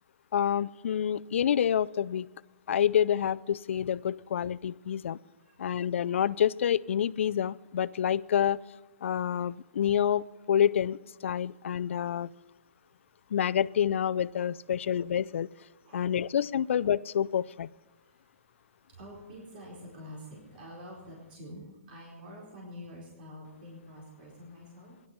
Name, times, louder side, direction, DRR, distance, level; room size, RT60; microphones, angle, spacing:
voice 1, 0.3-2.3 2.7-5.2 5.6-8.6 9.0-12.3 13.3-15.5 15.9-17.7, left 9 dB, 70° left, 20 dB, 0.4 m, -28 dB
voice 2, 5.4-5.8 12.8-12.9 15.8-16.2 16.5-16.6 18.0-24.9, equal, 45° right, -3 dB, 4.4 m, -48 dB
17.5 x 11.5 x 5.8 m, 1.1 s
hypercardioid pair, 155°, 7 cm